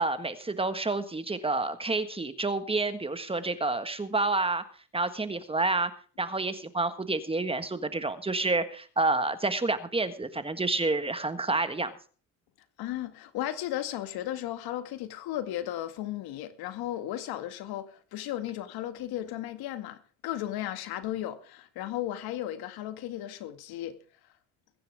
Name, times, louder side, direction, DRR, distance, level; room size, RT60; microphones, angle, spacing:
voice 1, 0.0-4.6 4.9-5.9 6.2-11.9, right 3 dB, 15° right, 1.5 m, -29 dB
voice 2, 12.8-24.0, left 13 dB, 75° left, 2.1 m, -35 dB
22.0 x 10.5 x 3.5 m
cardioid pair, 115°, 38 cm